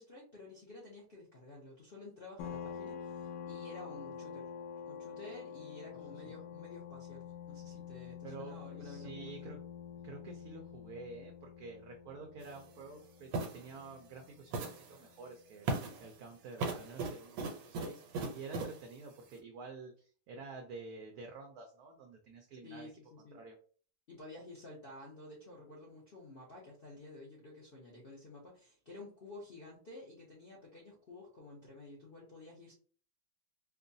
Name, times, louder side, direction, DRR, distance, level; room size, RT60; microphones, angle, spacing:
voice 1, 0.0-4.5 4.8-9.5 22.6-23.4 24.1-32.7, left 2 dB, 55° left, -4 dB, 0.6 m, -52 dB
sound 1, 2.4-15.7, left 7 dB, 70° left, 1.1 m, -47 dB
voice 2, 8.2-9.6 10.0-15.7 16.0-22.9 23.3-23.5, right 3 dB, 70° right, 3 dB, 0.9 m, -49 dB
sound 2, 12.4-12.6 13.3-13.7 14.5-14.9 15.7-16.1 16.6-18.8, right 3 dB, 85° right, 1.5 m, -37 dB
4.6 x 2.2 x 2.6 m, 0.43 s
omnidirectional pair, 2.1 m